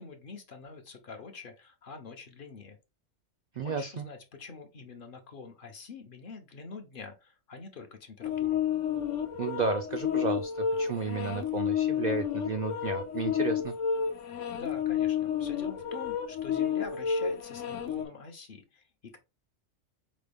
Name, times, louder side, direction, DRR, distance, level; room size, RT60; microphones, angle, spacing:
voice 1, 0.0-2.8 3.6-8.6 14.6-19.2, left 4 dB, 55° left, 6 dB, 0.7 m, -45 dB
voice 2, 3.6-4.0 9.4-13.7, right 5 dB, 65° right, 6 dB, 0.4 m, -33 dB
sound 1, 8.2-18.1, left 8 dB, 80° left, 1.0 m, -31 dB
5.0 x 2.2 x 3.3 m, 0.26 s
omnidirectional pair, 1.2 m